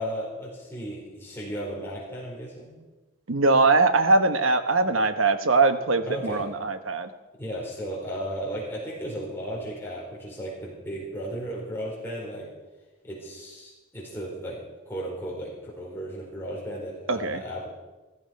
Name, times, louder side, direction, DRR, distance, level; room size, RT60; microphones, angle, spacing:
voice 1, 0.0-2.7 6.1-6.5 7.4-12.5 13.0-14.6 14.9-17.7, equal, 10° left, -5 dB, 4.3 m, -35 dB
voice 2, 3.3-7.1 17.1-17.4, right 3 dB, 80° right, 10 dB, 1.1 m, -21 dB
15.5 x 13.0 x 5.2 m, 1.1 s
head